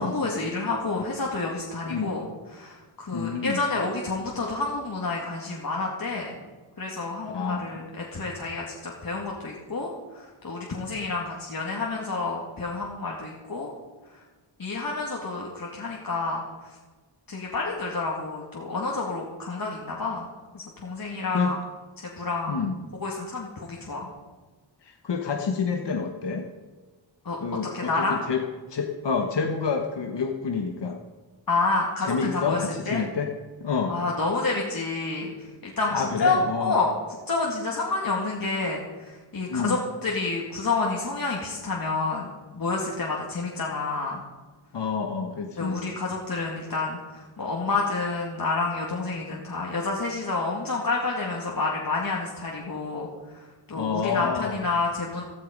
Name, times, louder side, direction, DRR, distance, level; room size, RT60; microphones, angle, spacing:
voice 1, 0.0-2.2 2.5-6.4 6.8-13.7 14.6-16.7 17.3-20.3 20.5-21.6 22.2-22.7 23.0-24.1 27.2-27.4 27.7-28.2 31.5-32.6 32.9-33.0 33.9-37.0 37.3-42.3 42.5-44.2 45.6-55.2, left 3 dB, 50° left, -2 dB, 2.3 m, -29 dB
voice 2, 3.1-3.6 7.3-7.6 21.3-21.6 22.5-22.8 24.8-26.5 27.4-28.4 28.7-31.0 32.0-33.3 33.6-34.0 35.9-36.8 39.5-39.8 44.7-45.8 53.7-54.6, left 5 dB, 65° left, 3 dB, 1.4 m, -28 dB
15.5 x 14.5 x 5.3 m, 1.3 s
wide cardioid pair, 125°, 45 cm